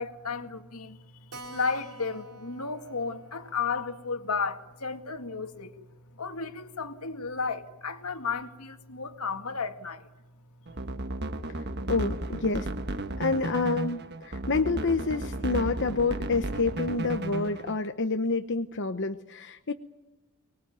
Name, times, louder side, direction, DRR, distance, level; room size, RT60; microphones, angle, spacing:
voice 1, 0.0-5.7 6.1-10.1, left 5 dB, 85° left, 2.1 m, -33 dB
Keyboard (musical), 1.3-6.4 6.6-6.7 7.0-7.1 7.4-7.5 8.1-8.4, right 1 dB, 80° right, 3.5 m, -50 dB
sound 1, 10.7-17.8, right 2 dB, 50° right, 1.4 m, -34 dB
voice 2, 11.5-12.7 13.2-19.7, left 3 dB, 55° left, 1.0 m, -28 dB
24.5 x 21.0 x 9.2 m
head